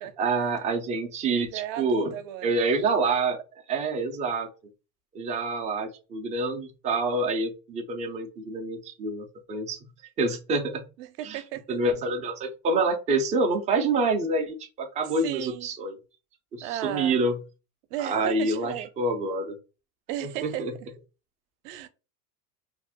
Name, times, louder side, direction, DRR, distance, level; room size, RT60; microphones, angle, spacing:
voice 1, 0.0-2.1 2.4-3.4 3.7-4.5 5.1-9.8 10.2-10.8 11.2-11.4 11.7-16.0 16.5-17.4 18.0-19.5 20.2-20.7, right 3 dB, 20° right, 0.3 m, -27 dB
voice 2, 1.5-2.5 11.0-11.6 15.2-15.7 16.6-17.2 17.9-18.9 20.1-20.7 21.6-21.9, right 12 dB, 60° right, 0.6 m, -35 dB
2.5 x 2.0 x 3.5 m
supercardioid pair, 110°, 46 cm